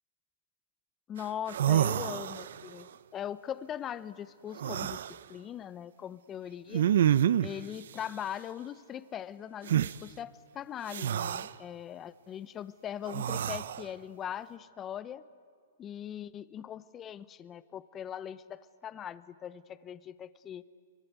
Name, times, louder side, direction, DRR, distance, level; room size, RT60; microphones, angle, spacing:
voice 1, 1.1-5.0 5.3-6.9 7.4-15.3 15.8-20.6, left 9 dB, 20° left, 16 dB, 0.7 m, -40 dB
sound 1, 1.2-1.3 1.5-2.7 4.6-5.2 6.7-7.6 9.7-9.9 10.9-11.5 13.1-13.8, right 10 dB, 70° right, 0.6 m, -28 dB
24.5 x 22.0 x 9.4 m, 2.3 s
hypercardioid pair, 145°, 0 cm